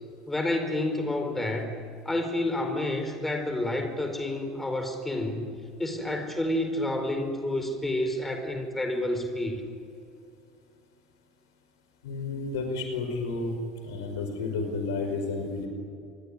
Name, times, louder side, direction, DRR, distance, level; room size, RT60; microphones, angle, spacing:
voice 1, 0.3-1.8 2.0-5.5 5.8-9.6, left 1 dB, 10° left, 6 dB, 4.6 m, -29 dB
voice 2, 12.0-13.5 13.8-15.7, left 3 dB, 70° left, 5 dB, 5.2 m, -31 dB
26.5 x 22.0 x 10.0 m, 2.4 s
figure-of-eight pair, 65°, 2 cm